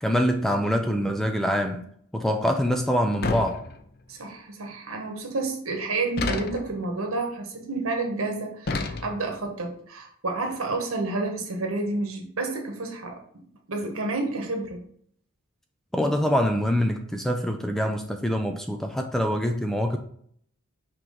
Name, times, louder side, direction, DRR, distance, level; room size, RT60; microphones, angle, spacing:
voice 1, 0.0-1.9 2.1-3.6 15.9-20.0, equal, ahead, 4 dB, 0.4 m, -25 dB
sound 1, 3.2-4.1 6.2-6.8 8.7-9.4, left 3 dB, 45° left, 0.5 m, -30 dB
voice 2, 4.1-13.2 13.7-14.8, right 3 dB, 80° right, 2 dB, 1.4 m, -30 dB
6.1 x 3.1 x 5.1 m, 0.63 s
head